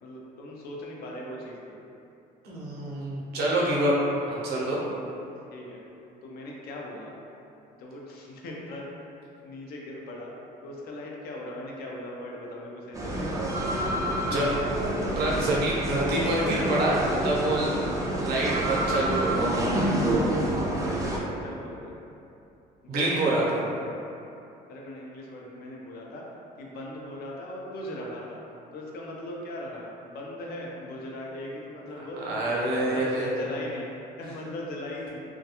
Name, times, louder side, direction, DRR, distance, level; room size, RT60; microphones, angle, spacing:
voice 1, 0.0-1.8 5.5-5.8 6.2-7.2 7.7-10.3 10.6-13.5 17.8-18.0 20.3-21.9 22.8-23.8 24.7-26.2 26.6-28.4 28.7-35.2, left 1 dB, 65° left, -2 dB, 0.5 m, -39 dB
voice 2, 2.4-4.0 4.3-4.8 14.2-14.6 15.2-17.7 18.2-19.7 22.9-23.6 32.2-33.3, right 1 dB, 70° right, -5 dB, 0.6 m, -26 dB
sound 1, 12.9-21.2, right 1 dB, 20° right, 0.3 m, -28 dB
2.3 x 2.2 x 2.8 m, 2.8 s
cardioid pair, 110°, 17 cm